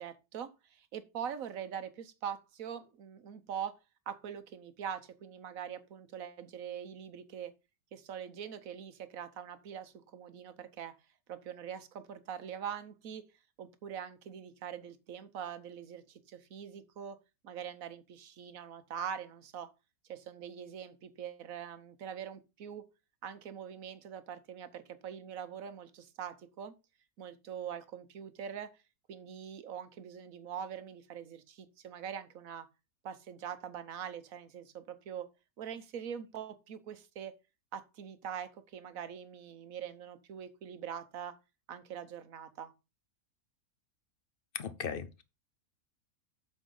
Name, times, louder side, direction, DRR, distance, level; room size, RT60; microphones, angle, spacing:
voice 1, 0.0-3.7 4.1-7.5 7.9-10.9 11.3-13.2 13.6-17.2 17.4-19.7 20.1-22.8 23.2-26.7 27.2-28.7 29.1-32.7 33.0-35.3 35.6-37.3 37.7-41.3 41.7-42.7, right 8 dB, 65° right, 1.3 m, -43 dB
voice 2, 44.5-45.2, left 7 dB, 50° left, 0.7 m, -37 dB
8.2 x 6.1 x 3.8 m
omnidirectional pair, 1.6 m